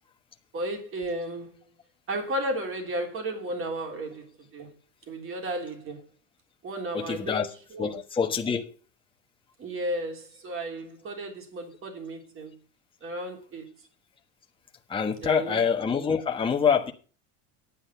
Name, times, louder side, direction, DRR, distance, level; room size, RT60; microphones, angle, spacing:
voice 1, 0.5-1.5 2.1-4.3 4.5-4.7 5.1-6.0 6.6-7.4 7.7-8.0 9.6-12.6 13.0-13.7 15.2-15.6, right 1 dB, 35° right, 3.4 m, -33 dB
voice 2, 6.9-7.5 7.8-8.6 14.9-16.9, left 6 dB, 15° left, 1.3 m, -25 dB
10.0 x 8.7 x 5.7 m
supercardioid pair, 135°, 39 cm